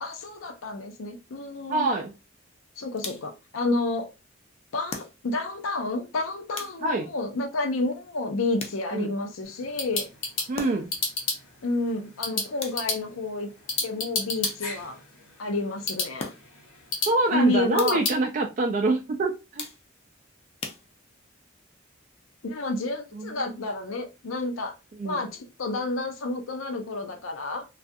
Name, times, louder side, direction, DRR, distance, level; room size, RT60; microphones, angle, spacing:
voice 1, 0.0-1.9 2.8-4.1 4.7-10.1 11.6-13.5 13.8-15.0 15.4-16.3 17.3-18.0 22.4-24.7 25.0-27.7, left 2 dB, 85° left, 0.5 m, -30 dB
voice 2, 1.7-2.1 6.8-7.1 8.9-9.1 10.5-10.9 17.1-19.7 23.1-23.5 24.9-25.2, right 2 dB, 40° right, 0.3 m, -26 dB
sound 1, 3.0-3.5 4.9-5.5 6.6-7.1 8.6-9.2 10.6-11.1 12.6-13.1 14.4-15.0 16.2-16.7 17.8-18.2 19.6-20.1 20.6-21.3, left 4 dB, 30° left, 0.4 m, -40 dB
sound 2, 9.4-18.2, left 3 dB, 70° left, 1.0 m, -33 dB
2.4 x 2.3 x 2.5 m
head